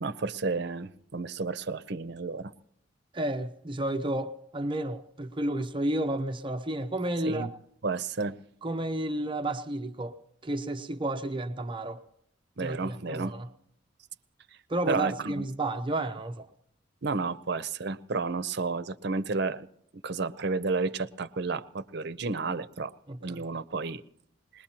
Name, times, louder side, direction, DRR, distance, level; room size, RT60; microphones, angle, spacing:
voice 1, 0.0-2.5 7.2-7.5 7.8-8.4 12.6-13.3 14.9-15.4 17.0-19.7 20.0-22.9 23.2-24.0, right 4 dB, 65° right, 0.7 m, -31 dB
voice 2, 3.1-7.5 8.6-10.1 10.4-12.0 12.6-13.5 14.7-16.5 23.1-23.4, right 1 dB, 25° right, 0.7 m, -31 dB
21.0 x 20.5 x 2.9 m
head